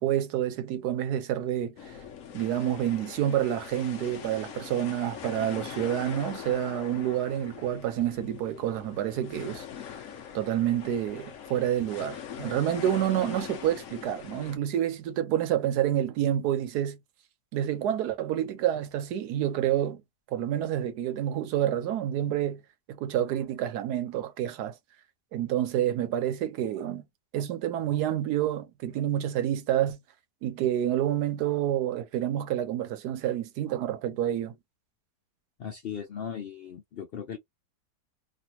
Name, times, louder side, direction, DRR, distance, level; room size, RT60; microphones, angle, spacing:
voice 1, 0.0-2.0 2.3-9.6 10.3-17.0 17.5-20.0 20.3-22.6 22.9-24.7 25.3-27.0 27.3-30.0 30.4-34.5, right 11 dB, 85° right, 1.2 m, -28 dB
sound 1, 1.8-14.6, left 8 dB, 60° left, 1.0 m, -42 dB
voice 2, 35.6-37.4, left 8 dB, 80° left, 0.5 m, -37 dB
3.2 x 2.5 x 2.8 m
omnidirectional pair, 1.7 m